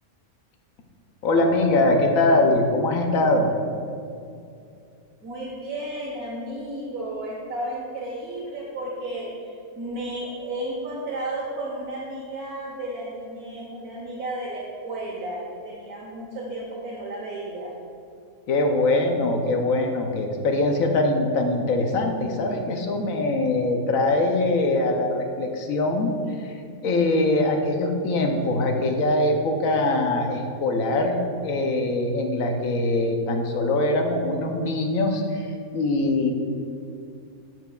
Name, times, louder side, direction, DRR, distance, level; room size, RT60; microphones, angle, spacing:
voice 1, 1.2-3.5 18.5-26.6 26.8-36.3, left 2 dB, 70° left, 3 dB, 1.1 m, -22 dB
voice 2, 5.2-17.7, right 1 dB, 80° right, -5 dB, 1.6 m, -33 dB
13.0 x 4.6 x 2.3 m, 2.5 s
omnidirectional pair, 1.6 m